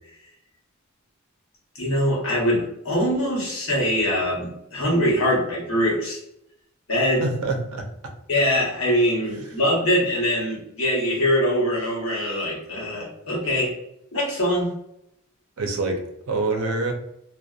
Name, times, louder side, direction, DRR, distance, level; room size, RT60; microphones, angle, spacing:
voice 1, 1.7-6.2 6.9-7.2 8.3-13.7 14.1-14.7, equal, 70° left, -4 dB, 1.0 m, -23 dB
voice 2, 7.2-7.9 9.4-9.5 15.6-16.9, right 3 dB, 90° right, 4 dB, 0.5 m, -26 dB
2.6 x 2.1 x 2.3 m, 0.80 s
head